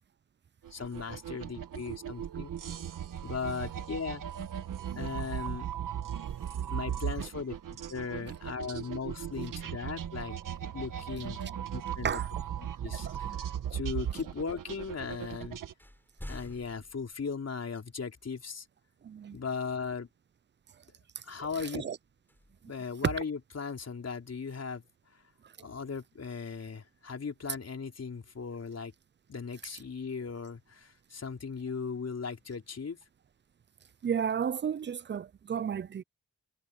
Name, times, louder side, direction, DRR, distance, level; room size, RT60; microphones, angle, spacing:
sound 1, 0.6-15.7, right 9 dB, 80° right, 1.7 m, -37 dB
voice 1, 0.7-2.5 3.2-4.2 4.9-5.7 6.7-7.6 7.9-10.3 10.7-11.4 11.7-12.1 12.8-13.4 13.7-15.6 16.3-18.7 19.3-20.1 21.3-21.9 22.6-24.8 25.6-28.9 29.3-33.0, left 5 dB, 50° left, 4.4 m, -37 dB
sound 2, 9.2-9.9 12.1-12.2 13.1-13.8 14.7-14.8 15.2-18.0 18.6-18.7 21.3-23.5, left 1 dB, 5° left, 5.1 m, -52 dB
voice 2, 12.9-13.3 13.7-13.8 19.0-19.4 21.6-22.0 25.6-25.7 34.0-36.0, right 8 dB, 35° right, 0.5 m, -33 dB
cardioid pair, 65°, 32 cm